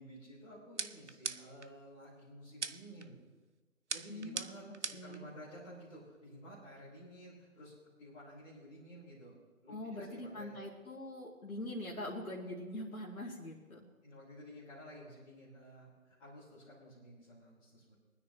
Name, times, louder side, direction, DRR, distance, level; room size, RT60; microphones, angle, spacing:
voice 1, 0.0-3.2 3.9-9.3 9.6-10.6 14.0-17.9, equal, 5° left, -15 dB, 1.5 m, -53 dB
sound 1, 0.8-1.7 2.6-3.1 3.9-5.2, right 4 dB, 55° right, 0.6 m, -40 dB
voice 2, 4.1-4.5 4.9-5.3 9.7-13.9, left 1 dB, 70° left, -4 dB, 2.4 m, -43 dB
24.5 x 9.8 x 3.0 m, 1.3 s
figure-of-eight pair, 165°, 44 cm